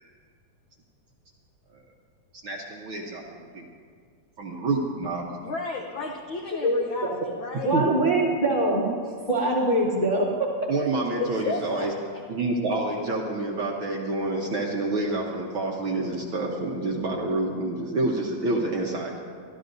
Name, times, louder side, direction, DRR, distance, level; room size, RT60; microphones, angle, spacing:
voice 1, 2.4-3.7 4.4-5.3 7.7-7.8 10.7-11.9 12.3-19.2, right 2 dB, 60° right, -1 dB, 1.4 m, -28 dB
voice 2, 5.4-7.7 9.8-9.9 11.2-11.9, left 4 dB, 75° left, 1 dB, 1.1 m, -33 dB
voice 3, 6.6-7.2 7.6-8.8 9.3-10.3, right 1 dB, 35° left, -5 dB, 0.9 m, -23 dB
25.0 x 13.0 x 2.6 m, 2.1 s
omnidirectional pair, 3.4 m